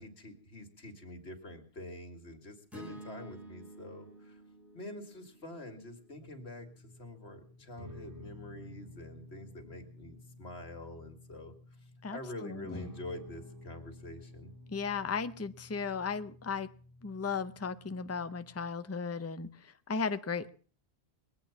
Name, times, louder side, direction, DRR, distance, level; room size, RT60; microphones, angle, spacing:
voice 1, 0.0-4.4 4.7-11.5 12.1-14.5, left 1 dB, 75° left, 5 dB, 2.4 m, -46 dB
sound 1, 2.7-7.0, right 1 dB, ahead, 3.1 m, -51 dB
sound 2, 6.1-18.7, left 1 dB, 20° right, 1.8 m, -52 dB
voice 2, 12.0-12.9 14.7-16.7 17.0-20.5, left 5 dB, 15° left, 11 dB, 0.5 m, -36 dB
21.5 x 8.6 x 7.1 m, 0.43 s
omnidirectional pair, 1.1 m